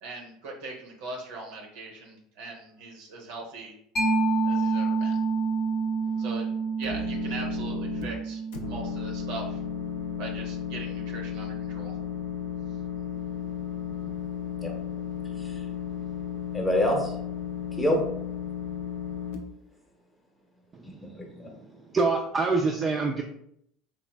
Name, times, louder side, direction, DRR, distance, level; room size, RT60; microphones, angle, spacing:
voice 1, 0.0-3.7 4.4-5.2 6.2-6.5 6.8-9.6 10.2-12.0 13.6-14.1, right 3 dB, 70° right, 1 dB, 0.6 m, -40 dB
Mallet percussion, 4.0-11.2, right 4 dB, 55° left, 0.7 m, -29 dB
sound 1, 6.8-8.0 8.5-19.3, left 8 dB, 75° left, 0.4 m, -34 dB
voice 2, 16.5-17.1 17.8-18.0 20.8-21.5, left 1 dB, 20° left, 1 dB, 0.8 m, -27 dB
voice 3, 21.9-23.2, right 3 dB, 30° right, 0 dB, 0.3 m, -25 dB
3.0 x 2.3 x 2.2 m, 0.71 s
hypercardioid pair, 80°, 0 cm